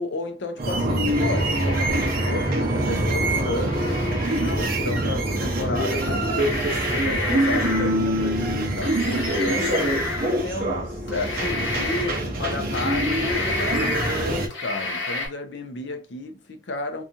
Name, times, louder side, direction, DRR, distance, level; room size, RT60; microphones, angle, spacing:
voice 1, 0.0-6.5 7.0-9.8 10.2-17.0, left 2 dB, 65° left, 0.5 m, -32 dB
sound 1, 0.6-14.5, right 1 dB, 50° right, 0.7 m, -24 dB
sound 2, 1.1-2.8 3.7-4.6 5.7-5.8 6.3-8.0 8.8-10.6 11.1-12.2 12.5-15.3, left 2 dB, 85° left, 1.1 m, -30 dB
2.8 x 2.3 x 2.5 m
head